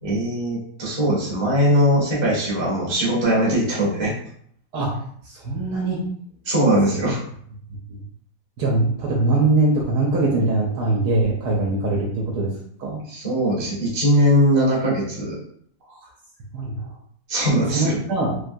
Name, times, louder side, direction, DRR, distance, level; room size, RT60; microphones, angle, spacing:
voice 1, 0.0-4.1 6.4-7.2 13.1-15.4 17.3-18.0, equal, 25° right, -5 dB, 0.7 m, -20 dB
voice 2, 5.2-6.0 7.9-8.0 8.6-12.5 12.8-13.0 15.8-16.0 16.5-16.9 17.7-18.3, right 2 dB, 70° right, -3 dB, 1.0 m, -22 dB
3.4 x 2.3 x 2.6 m, 0.64 s
omnidirectional pair, 2.1 m